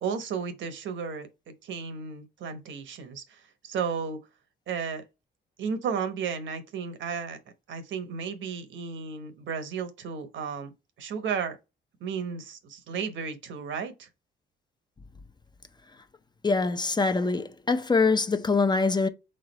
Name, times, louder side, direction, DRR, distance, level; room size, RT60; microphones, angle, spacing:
voice 1, 0.0-4.2 4.7-5.0 5.6-7.4 7.7-10.7 11.0-11.6 12.0-14.1, right 6 dB, 70° right, 1.0 m, -33 dB
voice 2, 16.4-19.1, left 4 dB, 20° left, 0.5 m, -24 dB
3.6 x 3.3 x 4.0 m
cardioid pair, 90°, 20 cm